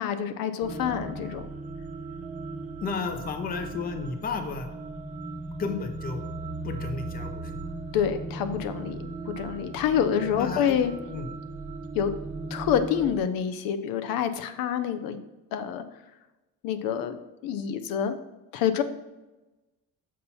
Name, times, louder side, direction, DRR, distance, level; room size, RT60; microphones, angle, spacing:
voice 1, 0.0-1.5 7.9-9.0 9.3-10.9 11.9-12.1 12.5-15.2 15.5-15.8 16.6-17.1 17.4-18.2 18.5-18.8, left 8 dB, 75° left, 10 dB, 0.7 m, -27 dB
sound 1, 0.6-13.2, right 2 dB, 20° right, 0.7 m, -37 dB
voice 2, 2.8-4.7 5.6-6.2 6.6-7.6 10.4-10.8 11.1-11.3, left 4 dB, 25° left, 7 dB, 0.6 m, -32 dB
7.4 x 5.5 x 4.1 m, 1.1 s
cardioid pair, 170°, 35 cm